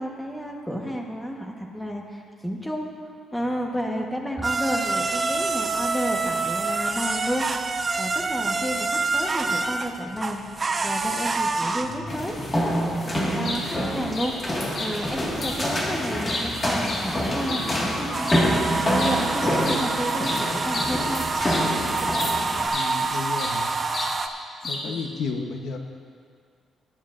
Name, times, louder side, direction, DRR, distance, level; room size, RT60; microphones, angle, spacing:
voice 1, 0.0-2.9 3.3-10.4 10.8-18.5 18.9-21.2 24.8-25.0, equal, 5° left, 0 dB, 1.1 m, -31 dB
sound 1, 4.4-24.3, right 3 dB, 25° right, 0.5 m, -28 dB
sound 2, 12.1-22.7, equal, 20° left, 1.7 m, -27 dB
sound 3, 13.4-13.6 14.1-14.3 14.7-14.9 15.4-15.6 16.0-17.7 18.2-18.5 19.0-19.2 19.4-21.7 22.1-22.3 22.7-23.6 23.9-24.1 24.6-25.0, left 2 dB, 45° left, 1.6 m, -32 dB
voice 2, 22.7-23.7 24.7-25.8, left 4 dB, 65° left, 4 dB, 0.8 m, -32 dB
19.0 x 10.0 x 2.5 m, 2.1 s
cardioid pair, 155°, 0 cm